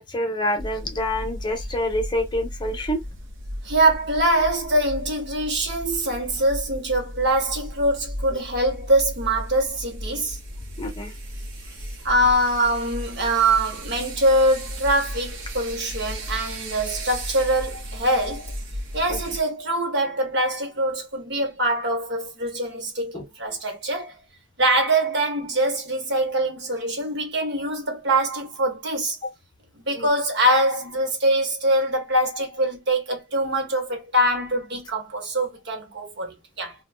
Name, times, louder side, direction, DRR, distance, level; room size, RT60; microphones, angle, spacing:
voice 1, 0.0-3.0 10.8-11.1 19.1-19.2 23.1-23.2 29.9-30.1, left 1 dB, 25° left, 0.7 m, -27 dB
sound 1, 0.6-19.4, equal, 75° right, 0.8 m, -35 dB
voice 2, 3.6-10.4 12.0-18.5 18.9-24.1 24.6-29.2 29.7-36.7, right 1 dB, 60° right, 1.1 m, -23 dB
2.5 x 2.2 x 3.3 m
head